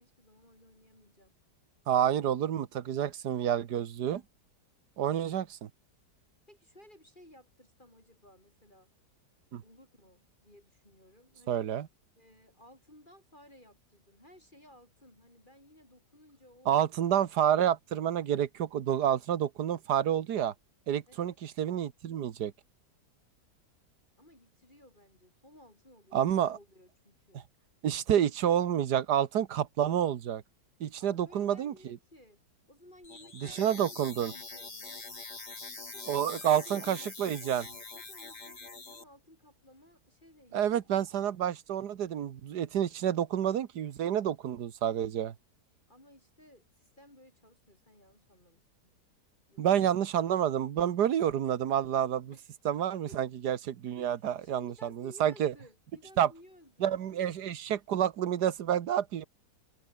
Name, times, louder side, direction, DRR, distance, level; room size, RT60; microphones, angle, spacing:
voice 1, 0.0-1.4 5.1-5.4 6.5-8.9 9.6-11.7 12.2-16.8 21.1-21.4 24.2-27.5 31.0-32.4 32.7-35.0 35.5-37.4 37.9-40.9 45.9-48.9 49.5-49.7 52.3-52.4 53.1-53.2 54.0-57.0, left 1 dB, 25° left, 7.3 m, -58 dB
voice 2, 1.9-4.2 5.0-5.7 9.5-9.6 11.5-11.9 16.7-20.5 20.9-22.5 26.1-26.6 27.8-30.4 30.8-31.7 33.6-34.3 36.1-37.6 40.5-45.3 49.6-52.3 52.6-55.5 56.2-56.3 56.8-59.2, right 10 dB, 70° right, 1.7 m, -29 dB
sound 1, 33.0-39.0, left 3 dB, 70° left, 4.8 m, -44 dB
omnidirectional pair, 1.8 m